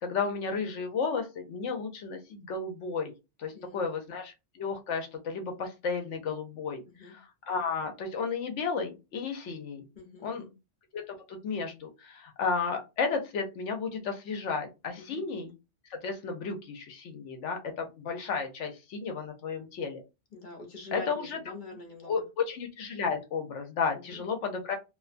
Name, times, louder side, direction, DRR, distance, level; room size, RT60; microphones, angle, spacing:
voice 1, 0.0-3.1 3.4-9.8 10.2-10.4 10.9-15.5 15.9-20.0 20.9-21.4 22.1-24.8, left 5 dB, 75° left, 4 dB, 1.0 m, -33 dB
voice 2, 3.5-4.1 6.9-7.1 9.9-10.5 15.0-15.2 20.3-22.2 23.9-24.2, left 3 dB, 45° left, 2 dB, 0.8 m, -45 dB
2.5 x 2.2 x 2.4 m, 0.26 s
omnidirectional pair, 1.2 m